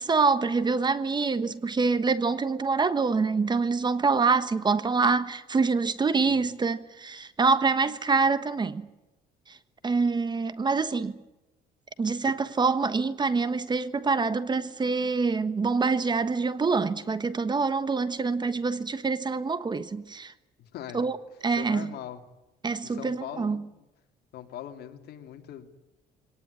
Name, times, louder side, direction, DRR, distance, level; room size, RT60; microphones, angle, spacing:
voice 1, 0.0-8.9 9.5-9.6 9.8-11.1 12.0-20.3 20.9-21.2 21.4-21.9 22.6-23.6, right 4 dB, 25° right, 1.3 m, -25 dB
voice 2, 20.6-21.1 21.5-22.2 22.8-23.9 24.3-25.8, left 11 dB, 70° left, 2.9 m, -41 dB
23.5 x 18.5 x 9.8 m
cardioid pair, 110°, 17 cm